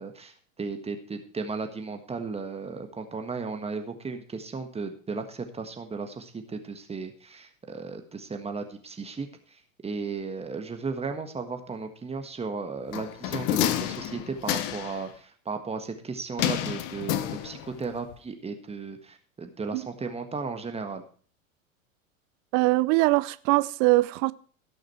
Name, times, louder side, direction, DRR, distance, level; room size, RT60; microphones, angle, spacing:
voice 1, 0.0-21.0, right 4 dB, 15° right, 1.5 m, -35 dB
sound 1, 12.9-15.0 16.4-17.8 18.1-18.2, left 11 dB, 50° left, 1.2 m, -29 dB
voice 2, 22.5-24.3, right 22 dB, 45° right, 0.7 m, -22 dB
17.0 x 6.5 x 4.4 m
hypercardioid pair, 90°, 40 cm